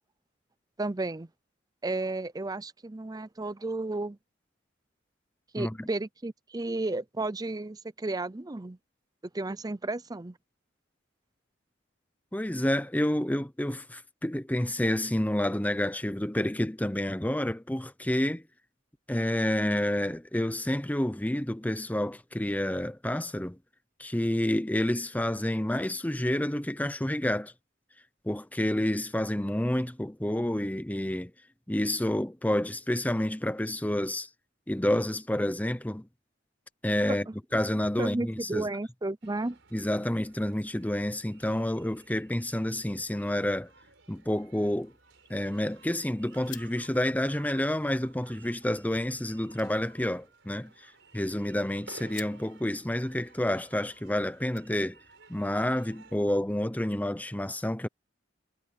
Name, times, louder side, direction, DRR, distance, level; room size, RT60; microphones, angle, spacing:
voice 1, 0.8-1.3 1.8-4.2 5.5-8.8 9.3-10.4 37.1-37.3 38.0-39.6, right 2 dB, 20° right, 0.6 m, -33 dB
voice 2, 5.6-5.9 12.3-18.4 19.1-23.6 24.0-27.5 28.2-31.3 31.7-34.3 34.7-36.1 36.8-37.3 37.5-38.7 39.7-43.7 44.1-44.9 45.3-50.7 51.1-55.0 55.3-57.9, left 1 dB, 10° left, 0.8 m, -29 dB
sound 1, 39.2-56.2, right 4 dB, 70° right, 5.7 m, -56 dB
sound 2, 44.9-55.2, left 13 dB, 70° left, 4.0 m, -55 dB
head